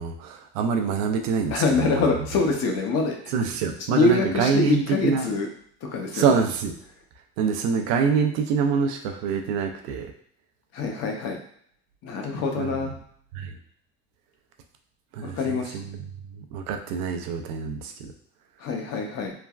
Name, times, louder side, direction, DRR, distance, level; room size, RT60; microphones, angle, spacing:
voice 1, 0.0-2.0 3.3-5.3 6.1-6.7 7.4-10.1 12.6-12.8 13.3-13.5 15.1-15.8 16.4-18.1, right 6 dB, 75° right, 5 dB, 0.5 m, -25 dB
voice 2, 1.5-3.3 3.8-5.5 5.8-6.4 10.7-11.4 12.0-12.9 15.2-15.8 18.6-19.3, left 3 dB, 50° left, 2 dB, 0.7 m, -25 dB
3.3 x 2.2 x 2.3 m, 0.64 s
supercardioid pair, 95°, 32 cm